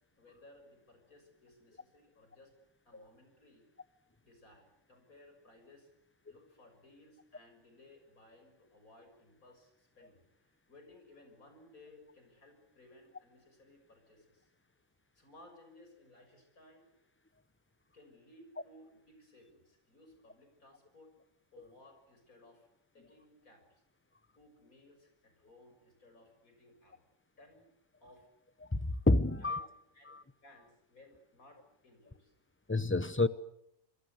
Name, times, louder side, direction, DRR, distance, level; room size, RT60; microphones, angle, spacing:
voice 1, 0.1-2.5 2.9-3.7 4.2-5.9 6.3-14.5 15.2-16.9 17.9-21.1 21.5-22.7 22.9-23.8 24.4-27.0 27.4-27.7 28.0-28.3 29.3-29.7 29.9-30.2 30.4-32.3 33.2-33.3, left 1 dB, 90° left, 7.1 m, -60 dB
voice 2, 28.7-29.7 30.1-30.2 32.7-33.3, left 2 dB, 10° left, 0.8 m, -29 dB
26.0 x 24.0 x 8.2 m
omnidirectional pair, 1.4 m